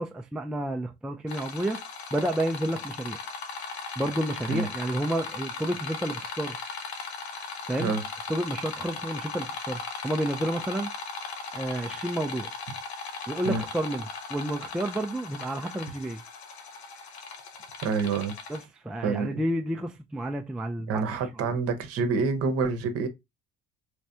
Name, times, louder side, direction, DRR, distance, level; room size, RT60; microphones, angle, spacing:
voice 1, 0.0-1.8 2.1-3.2 4.0-6.6 7.7-7.9 8.3-10.9 11.5-12.5 13.3-16.2 18.5-21.4, right 1 dB, ahead, 0.3 m, -30 dB
sound 1, 1.3-18.6, left 4 dB, 75° left, 0.7 m, -38 dB
voice 2, 17.8-18.3 19.0-19.3 20.9-23.1, right 4 dB, 45° right, 0.8 m, -27 dB
3.2 x 3.2 x 2.7 m
figure-of-eight pair, 55°, 32 cm